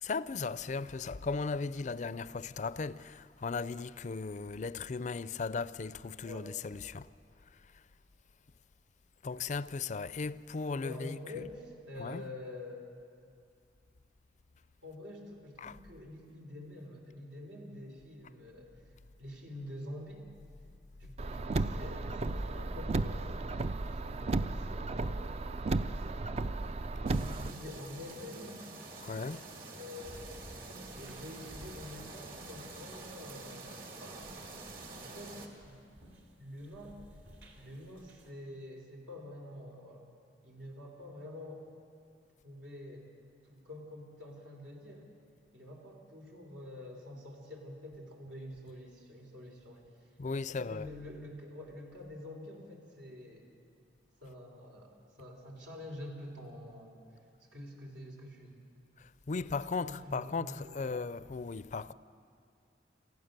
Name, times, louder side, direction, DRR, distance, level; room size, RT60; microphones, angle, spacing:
voice 1, 0.0-7.1 9.2-11.2 12.0-12.2 15.6-15.7 29.0-29.4 50.2-50.9 59.3-61.9, left 4 dB, 45° left, 0.4 m, -37 dB
voice 2, 10.8-12.9 14.8-18.9 19.2-20.2 21.0-23.5 24.1-25.4 27.2-28.6 29.7-34.3 34.9-35.9 36.4-37.0 37.5-40.1 40.4-41.7 42.4-43.1 43.4-45.1 45.5-50.1 50.5-53.5 54.2-57.2 57.5-58.6 59.4-59.5 59.8-60.9, left 1 dB, 85° right, 3.6 m, -47 dB
Car, 21.2-27.5, right 2 dB, 35° right, 0.4 m, -34 dB
sound 1, 27.1-35.5, right 3 dB, 55° right, 2.2 m, -47 dB
sound 2, 30.0-38.3, equal, 70° right, 2.5 m, -56 dB
27.5 x 15.0 x 6.7 m
head